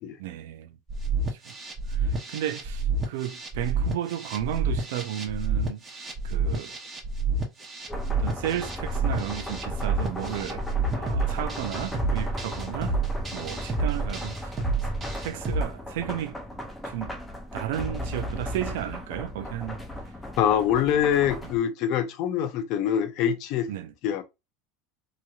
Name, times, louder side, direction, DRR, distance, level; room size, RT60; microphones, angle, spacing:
voice 1, 0.2-0.8 1.3-1.5 1.9-5.8 6.2-6.8 8.1-10.6 10.9-13.0 13.3-14.6 15.2-16.4 16.8-17.1 17.5-19.8 21.4-21.5 23.7-23.9, right 11 dB, 80° right, 0.5 m, -33 dB
sound 1, 0.9-15.6, right 3 dB, 20° right, 0.9 m, -29 dB
sound 2, 7.9-21.6, left 1 dB, 5° left, 0.6 m, -36 dB
voice 2, 20.4-23.7 24.0-24.2, left 9 dB, 50° left, 0.6 m, -24 dB
3.0 x 2.7 x 2.4 m
supercardioid pair, 150°, 0 cm